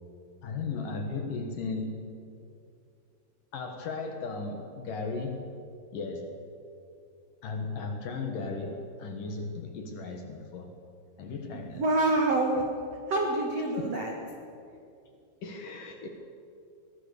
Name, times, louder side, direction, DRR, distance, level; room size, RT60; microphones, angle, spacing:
voice 1, 0.4-2.0 3.5-5.5 5.9-6.4 7.4-10.8 11.2-11.8 13.8-13.9 15.4-16.1, left 4 dB, 65° left, 4 dB, 2.1 m, -36 dB
voice 2, 11.7-12.6 13.1-14.1, right 2 dB, 70° right, 1 dB, 1.5 m, -26 dB
24.0 x 18.5 x 6.8 m, 2.5 s
omnidirectional pair, 5.9 m